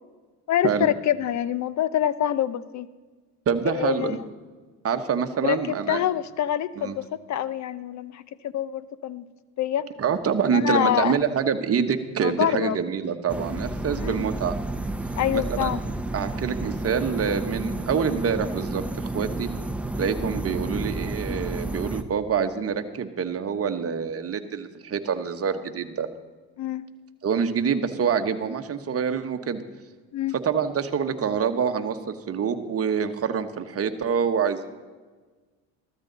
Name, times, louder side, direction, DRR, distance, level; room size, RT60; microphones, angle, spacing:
voice 1, 0.5-2.9 3.7-4.2 5.4-5.6 5.9-9.3 9.6-9.9 10.5-11.2 12.2-12.8 14.0-14.3 15.2-15.8 26.6-26.9 30.1-30.4, left 11 dB, 45° left, 16 dB, 0.8 m, -26 dB
voice 2, 3.5-4.2 4.8-6.0 6.8-7.0 10.0-14.6 15.3-15.7 16.1-19.5 20.0-26.1 27.2-29.6 30.4-34.7, right 7 dB, 35° right, 7 dB, 1.3 m, -26 dB
sound 1, 13.3-22.0, right 2 dB, 5° right, 0.8 m, -31 dB
14.5 x 13.5 x 4.1 m, 1.3 s
supercardioid pair, 95°, 39 cm